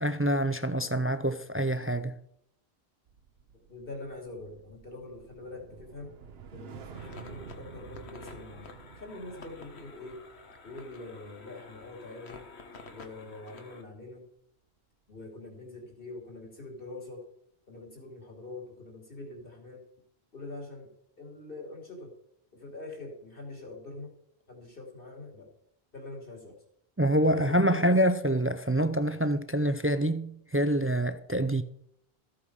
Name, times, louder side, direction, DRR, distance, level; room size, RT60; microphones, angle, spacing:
voice 1, 0.0-2.2 27.0-31.6, right 1 dB, 20° right, 0.3 m, -26 dB
sound 1, 3.1-13.5 13.8-14.1, right 7 dB, 75° right, 1.1 m, -51 dB
voice 2, 3.7-6.2 6.5-10.2 10.6-12.4 12.8-14.2 15.1-17.2 17.7-19.8 20.3-20.9 21.2-22.1 22.5-24.1 24.5-25.5 25.9-26.6 27.3-27.9, left 2 dB, 60° left, 3.2 m, -44 dB
sound 2, 6.9-13.8, left 4 dB, 85° left, 1.5 m, -50 dB
14.0 x 8.5 x 4.8 m
omnidirectional pair, 1.1 m